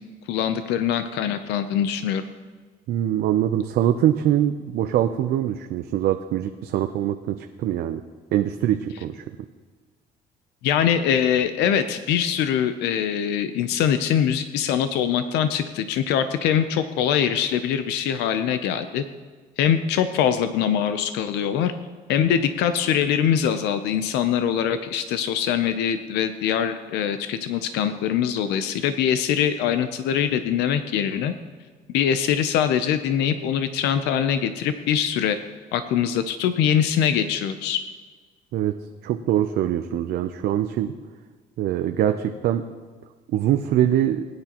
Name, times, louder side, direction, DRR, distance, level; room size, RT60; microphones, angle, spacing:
voice 1, 0.3-2.2 10.6-19.0 19.6-21.7 22.1-31.3 31.9-35.4 35.7-37.8, left 9 dB, 85° left, 10 dB, 0.6 m, -23 dB
voice 2, 2.9-8.0 8.3-9.2 38.5-38.7 39.0-40.9 41.6-42.6 43.3-44.3, right 11 dB, 70° right, 6 dB, 0.6 m, -23 dB
20.0 x 9.6 x 3.0 m, 1.4 s
cardioid pair, 110°, 17 cm